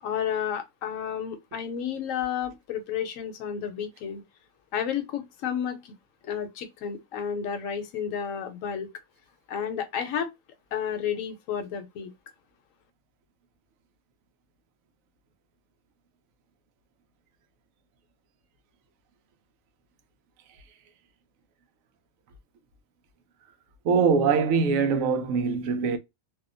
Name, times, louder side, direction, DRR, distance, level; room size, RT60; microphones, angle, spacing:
voice 1, 0.0-4.2 4.7-5.9 6.2-8.9 9.5-10.3 10.7-12.1, left 8 dB, 75° left, 1.0 m, -31 dB
voice 2, 23.8-26.0, right 5 dB, 80° right, 1.0 m, -23 dB
2.7 x 2.1 x 2.4 m
omnidirectional pair, 1.4 m